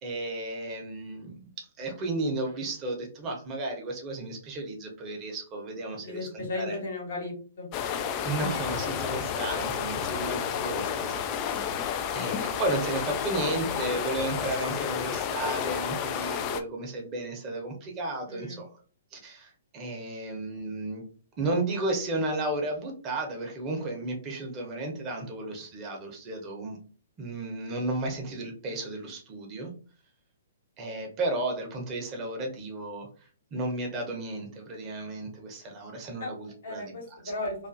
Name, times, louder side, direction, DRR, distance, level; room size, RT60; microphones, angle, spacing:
voice 1, 0.0-6.8 8.2-11.2 11.5-11.9 12.1-18.7 19.1-21.0 21.4-26.8 27.2-29.7 30.8-37.2, right 2 dB, 30° right, 1 dB, 0.8 m, -33 dB
voice 2, 6.0-7.7 18.3-18.6 36.2-36.3 36.6-37.6, left 2 dB, 60° left, 1 dB, 1.1 m, -35 dB
sound 1, 7.7-16.6, left 8 dB, 35° left, 0.3 m, -31 dB
2.5 x 2.4 x 2.5 m, 0.41 s
figure-of-eight pair, 125°, 0 cm